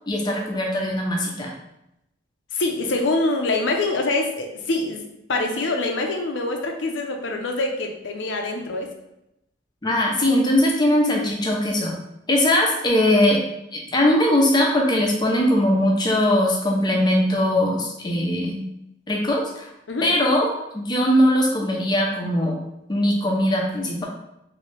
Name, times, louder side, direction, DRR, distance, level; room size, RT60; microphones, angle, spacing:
voice 1, 0.1-1.5 9.8-12.0 12.3-13.4 13.7-18.6 19.1-19.7 20.0-22.6 22.9-24.0, left 1 dB, 25° left, -1 dB, 0.6 m, -20 dB
voice 2, 2.5-8.9 19.9-20.1, left 2 dB, 85° left, 3 dB, 0.6 m, -25 dB
3.1 x 2.7 x 3.3 m, 0.85 s
head